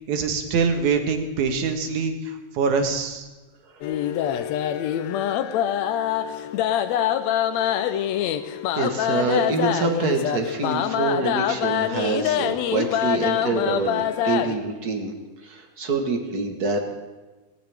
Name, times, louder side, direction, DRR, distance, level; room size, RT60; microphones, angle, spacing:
voice 1, 0.1-3.3, right 5 dB, 75° right, 5 dB, 2.7 m, -24 dB
sound 1, 3.8-14.6, left 10 dB, 75° left, 1.8 m, -25 dB
voice 2, 8.8-15.1 15.4-16.8, right 3 dB, 45° right, 4 dB, 1.3 m, -26 dB
18.0 x 18.0 x 3.5 m, 1.2 s
omnidirectional pair, 3.4 m